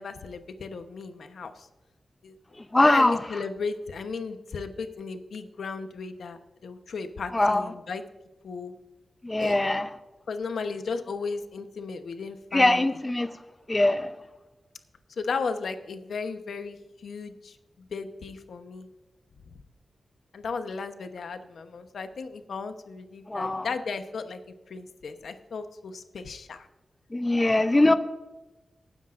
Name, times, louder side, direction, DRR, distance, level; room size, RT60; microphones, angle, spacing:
voice 1, 0.0-1.7 2.2-2.3 2.8-8.0 8.4-8.7 9.4-9.6 10.3-12.9 15.2-18.9 20.3-24.4 24.7-26.7 27.4-27.5, left 4 dB, 85° left, 8 dB, 1.0 m, -35 dB
voice 2, 2.7-3.2 7.3-7.6 9.2-9.9 12.5-13.3 13.7-14.1 23.3-23.7 27.1-28.0, left 2 dB, 20° left, 9 dB, 0.6 m, -22 dB
19.0 x 10.0 x 2.6 m, 1.1 s
wide cardioid pair, 135°, 0 cm